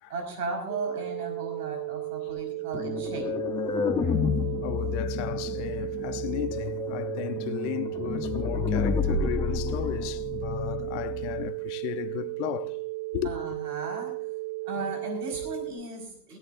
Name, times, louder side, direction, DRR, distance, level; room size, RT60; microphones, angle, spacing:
voice 1, 0.1-3.3 13.2-14.1 14.6-16.4, right 3 dB, 70° right, 5.1 m, -35 dB
sound 1, 0.7-15.7, right 22 dB, 85° right, 3.7 m, -35 dB
sound 2, 2.7-11.5, left 6 dB, 10° left, 0.5 m, -30 dB
voice 2, 4.6-12.8 13.1-13.4, left 14 dB, 45° left, 1.0 m, -35 dB
17.5 x 16.5 x 2.6 m
hypercardioid pair, 120°, 48 cm